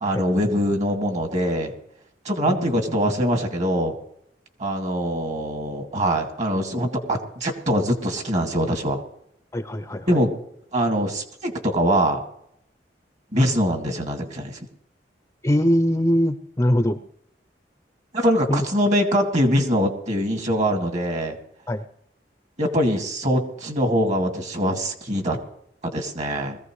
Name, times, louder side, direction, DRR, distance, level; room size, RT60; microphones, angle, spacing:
voice 1, 0.0-1.7 2.2-3.9 4.6-9.0 10.1-10.3 10.7-12.2 13.3-14.6 18.1-21.4 22.6-25.4 25.9-26.6, equal, 45° right, 4 dB, 2.2 m, -23 dB
voice 2, 2.5-3.0 9.5-10.2 15.4-17.0 18.5-18.6 21.7-21.8, equal, 15° left, 11 dB, 0.5 m, -22 dB
20.5 x 15.0 x 3.2 m, 0.74 s
head